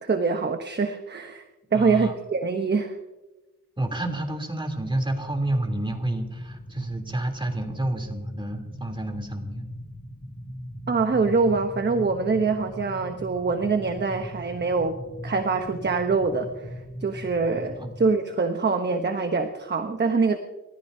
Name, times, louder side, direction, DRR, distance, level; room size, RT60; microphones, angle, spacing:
voice 1, 0.0-1.4 1.7-2.9 10.9-16.7 17.0-20.4, right 4 dB, 35° right, 6 dB, 1.0 m, -24 dB
voice 2, 1.7-2.2 3.8-9.6 17.8-17.9, right 1 dB, 15° right, 2 dB, 3.3 m, -29 dB
sound 1, 4.7-18.1, equal, 15° left, 3.0 m, -40 dB
30.0 x 14.5 x 2.8 m, 1.1 s
wide cardioid pair, 95°, 32 cm